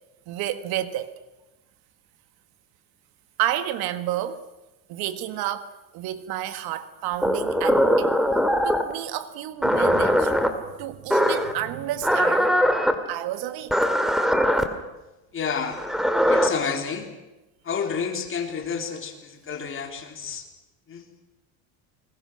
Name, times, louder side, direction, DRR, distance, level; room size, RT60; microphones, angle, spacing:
voice 1, 0.3-1.1 3.4-4.4 4.9-8.1 8.6-10.4 10.8-12.6 13.1-13.9, right 12 dB, 65° right, 1.6 m, -30 dB
sound 1, 7.2-8.9 9.6-10.5 11.1-11.5 12.0-12.9 13.7-14.6 15.7-16.5, equal, ahead, 2.1 m, -21 dB
voice 2, 15.3-15.8 16.3-17.1 17.6-20.5 20.9-21.0, left 6 dB, 30° left, 3.8 m, -30 dB
28.5 x 21.5 x 6.4 m
cardioid pair, 125°, 40 cm